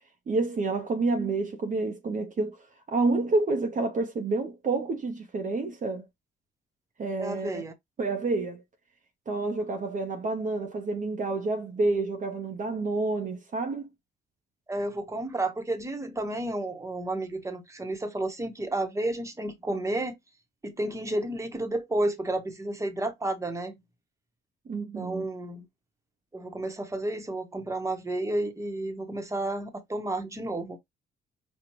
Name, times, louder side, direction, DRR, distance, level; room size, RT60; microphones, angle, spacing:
voice 1, 0.3-2.6 2.9-6.1 7.0-7.6 8.0-8.6 9.3-13.9 24.7-25.2, right 3 dB, 40° right, 0.8 m, -29 dB
voice 2, 7.2-7.7 14.7-20.2 20.6-23.8 24.9-25.6 26.3-30.8, right 1 dB, 15° right, 1.1 m, -31 dB
5.2 x 2.3 x 3.0 m
cardioid pair, 90°, 20 cm